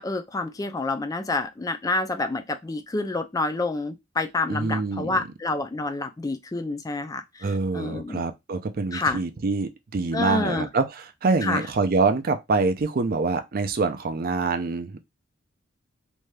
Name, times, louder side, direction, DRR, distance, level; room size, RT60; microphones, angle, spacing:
voice 1, 0.0-8.2 8.9-9.2 10.1-10.7 11.4-11.7, left 3 dB, 20° left, 0.3 m, -28 dB
voice 2, 4.5-5.2 7.4-15.0, right 4 dB, 45° right, 0.4 m, -25 dB
2.6 x 2.3 x 3.1 m
head